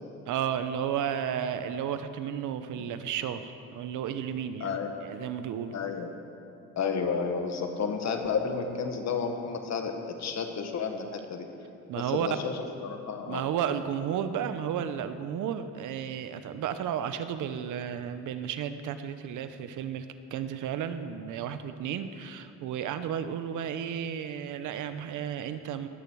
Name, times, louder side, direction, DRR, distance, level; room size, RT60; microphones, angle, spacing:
voice 1, 0.2-5.7 11.9-12.3 13.3-20.1 20.3-25.9, right 9 dB, 85° right, 10 dB, 0.9 m, -33 dB
voice 2, 4.6-4.9 5.7-6.1 6.8-11.5 12.0-13.4, left 5 dB, 60° left, 4 dB, 1.8 m, -31 dB
18.5 x 12.5 x 4.7 m, 2.8 s
cardioid pair, 90°, 30 cm